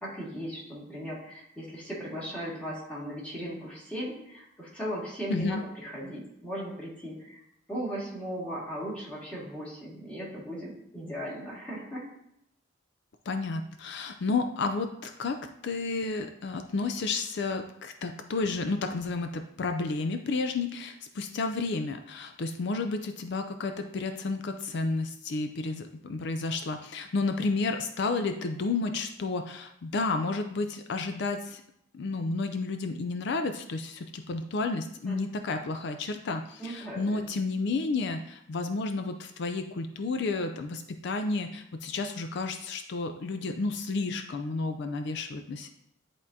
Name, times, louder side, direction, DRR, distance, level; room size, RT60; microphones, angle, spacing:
voice 1, 0.0-7.4 7.7-12.0 35.1-35.2 36.6-37.2, equal, 5° left, -7 dB, 1.9 m, -37 dB
voice 2, 5.3-5.6 13.3-15.4 15.6-31.6 31.9-45.7, left 3 dB, 55° left, 7 dB, 0.4 m, -31 dB
10.5 x 3.6 x 2.7 m, 0.76 s
head